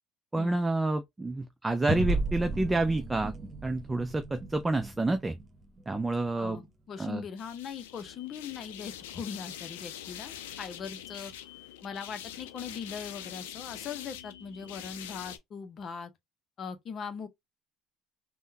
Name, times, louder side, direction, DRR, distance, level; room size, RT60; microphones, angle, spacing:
voice 1, 0.3-3.3 3.6-5.4 5.9-6.6 7.0-7.2, right 2 dB, 15° right, 0.4 m, -29 dB
sound 1, 1.9-6.7, right 2 dB, 35° right, 1.0 m, -35 dB
voice 2, 6.4-11.3 11.8-16.1 16.6-17.3, left 6 dB, 50° left, 0.7 m, -40 dB
sound 2, 7.4-15.4, left 11 dB, 85° left, 0.4 m, -44 dB
3.6 x 2.2 x 2.6 m
hypercardioid pair, 70°, 0 cm